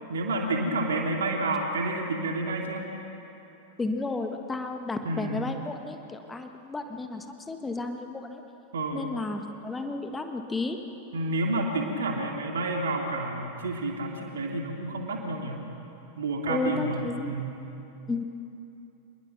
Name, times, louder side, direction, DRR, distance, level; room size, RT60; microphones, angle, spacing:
voice 1, 0.1-2.9 5.0-5.5 8.7-9.1 11.1-15.6 16.2-17.6, right 2 dB, 65° right, 1 dB, 2.9 m, -30 dB
voice 2, 3.8-8.4 8.9-10.8 16.5-17.3 18.1-18.2, left 3 dB, 15° left, 6 dB, 1.6 m, -32 dB
27.0 x 21.5 x 6.1 m, 2.8 s
figure-of-eight pair, 90°, 0 cm